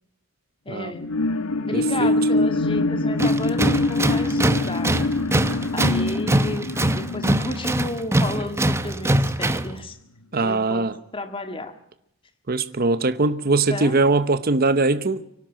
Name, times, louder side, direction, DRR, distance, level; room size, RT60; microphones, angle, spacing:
voice 1, 0.7-1.1 1.6-4.9 5.7-10.0 10.4-11.8 13.7-14.0, left 2 dB, 25° left, 1.9 m, -32 dB
sound 1, 0.9-8.7 9.1-9.2, left 2 dB, 80° left, 1.2 m, -24 dB
voice 2, 1.7-2.1 10.3-10.9 12.5-15.2, right 3 dB, 45° right, 0.9 m, -21 dB
Tools, 3.2-9.8, right 1 dB, 15° right, 0.8 m, -23 dB
24.5 x 12.0 x 9.1 m
head